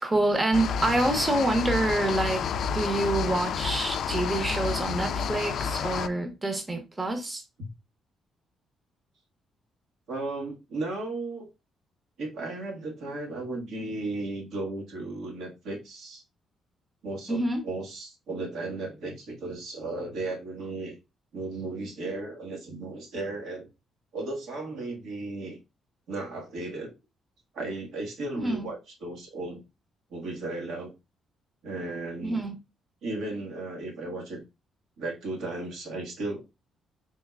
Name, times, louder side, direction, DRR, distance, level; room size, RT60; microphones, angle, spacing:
voice 1, 0.0-2.4 2.7-7.4 17.3-17.6 28.3-28.7 32.2-32.6, right 2 dB, 20° right, 0.8 m, -27 dB
sound 1, 0.5-6.1, left 7 dB, 70° left, 0.3 m, -30 dB
voice 2, 10.1-11.5 12.2-16.2 17.0-20.9 21.3-23.7 24.1-25.6 26.1-26.9 27.5-29.6 30.1-30.9 31.6-32.4 33.0-34.4 35.0-36.5, right 2 dB, 80° right, 1.5 m, -35 dB
4.2 x 3.1 x 2.4 m
cardioid pair, 90°, 0 cm